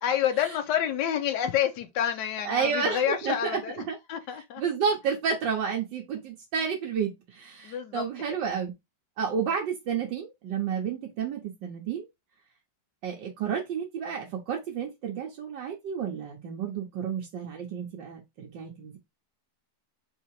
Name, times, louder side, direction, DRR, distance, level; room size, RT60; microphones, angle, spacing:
voice 1, 0.0-4.6 7.6-8.0, left 10 dB, 75° left, 1.3 m, -28 dB
voice 2, 2.4-3.6 3.9-4.0 4.6-8.7 9.2-12.1 13.0-19.0, right 6 dB, 85° right, 1.6 m, -31 dB
4.0 x 2.8 x 4.6 m
omnidirectional pair, 1.9 m